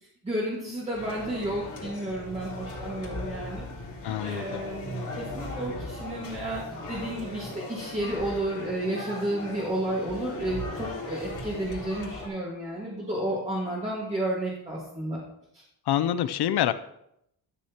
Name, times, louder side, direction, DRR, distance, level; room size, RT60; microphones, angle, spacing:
voice 1, 0.2-3.7 4.0-6.6 6.9-15.2 15.5-15.6, right 1 dB, 15° right, -6 dB, 1.9 m, -32 dB
sound 1, 0.9-12.3, left 2 dB, 50° left, 3.1 m, -38 dB
voice 2, 4.0-4.6 15.9-16.7, left 11 dB, 80° left, 13 dB, 0.7 m, -26 dB
13.0 x 6.4 x 2.9 m, 0.78 s
wide cardioid pair, 155°, 38 cm